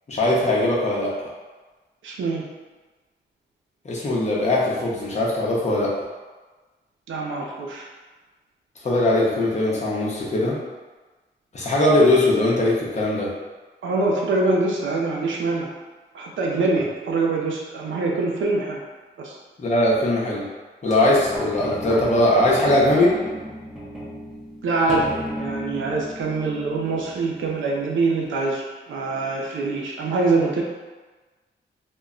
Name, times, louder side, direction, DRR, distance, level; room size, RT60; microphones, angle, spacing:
voice 1, 0.1-1.1 3.8-5.9 8.8-10.6 11.5-13.3 19.6-20.4 20.8-23.2, left 1 dB, 35° left, -5 dB, 0.7 m, -20 dB
voice 2, 2.0-2.4 7.1-7.8 13.8-15.7 16.1-18.8 19.2-19.4 24.6-25.1 25.4-30.6, right 3 dB, 85° right, -2 dB, 0.5 m, -24 dB
sound 1, 20.9-27.6 28.3-28.4, equal, ahead, 0.6 m, -34 dB
2.2 x 2.1 x 3.6 m, 1.3 s
wide cardioid pair, 100°, 20 cm